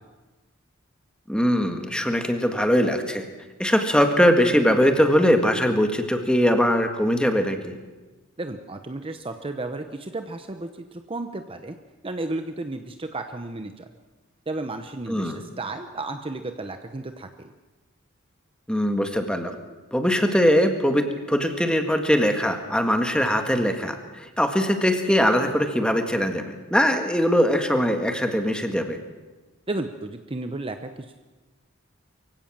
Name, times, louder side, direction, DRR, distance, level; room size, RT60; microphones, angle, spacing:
voice 1, 1.3-3.2 3.6-7.8 15.1-15.4 18.7-19.6 19.9-29.0, equal, 5° left, 5 dB, 1.8 m, -21 dB
voice 2, 8.4-11.8 12.0-13.9 14.5-17.5 29.7-30.9, right 2 dB, 25° right, 7 dB, 0.9 m, -33 dB
24.0 x 16.0 x 7.5 m, 1.2 s
head